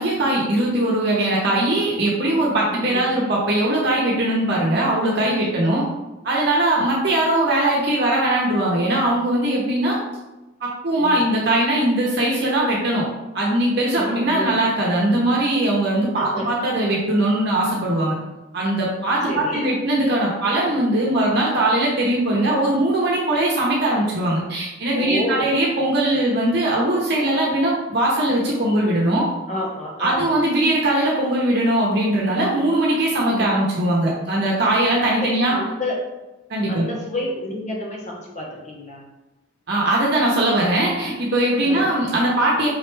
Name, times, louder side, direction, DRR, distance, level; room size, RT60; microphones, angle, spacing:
voice 1, 0.0-5.8 6.2-10.0 10.6-13.1 13.3-18.2 18.5-29.3 30.0-35.5 36.5-36.8 39.7-42.7, right 1 dB, 55° right, -4 dB, 0.9 m, -20 dB
voice 2, 2.7-3.1 5.4-5.7 11.0-11.2 14.0-14.5 16.1-16.5 19.2-19.7 24.9-25.5 29.5-30.4 33.3-33.6 35.2-36.0 36.7-39.0 41.6-41.9, left 1 dB, 35° left, -2 dB, 1.0 m, -29 dB
5.0 x 3.2 x 3.3 m, 1.0 s
head